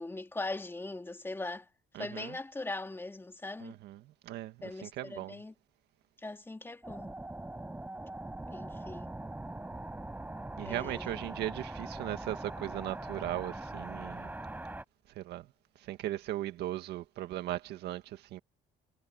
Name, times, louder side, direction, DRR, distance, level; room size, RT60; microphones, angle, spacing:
voice 1, 0.0-1.7 2.0-3.7 4.6-5.5 6.2-7.1 8.5-9.2 10.6-11.2, left 2 dB, 15° left, 2.5 m, -40 dB
voice 2, 2.0-2.4 3.6-4.0 4.3-4.6 4.8-5.4 10.6-14.3 15.2-15.5 15.9-18.4, right 14 dB, 80° right, 1.8 m, -38 dB
sound 1, 6.8-14.8, right 2 dB, 10° right, 5.1 m, -42 dB
cardioid pair, 110°, 17 cm